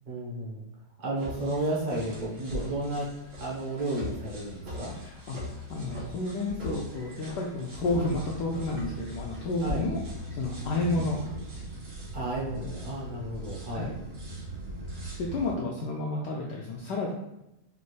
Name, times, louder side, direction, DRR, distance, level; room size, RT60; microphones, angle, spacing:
voice 1, 0.1-0.6 1.0-3.1 3.4-4.9 9.6-9.9 10.9-11.1 12.1-13.9, right 1 dB, 40° right, -4 dB, 0.6 m, -32 dB
sound 1, 1.2-15.5, right 1 dB, 75° right, 2.3 m, -40 dB
voice 2, 5.0-10.0 10.3-11.2 13.7-13.9 15.2-17.1, left 2 dB, 75° left, -2 dB, 0.9 m, -31 dB
5.4 x 2.5 x 3.1 m, 0.89 s
omnidirectional pair, 2.4 m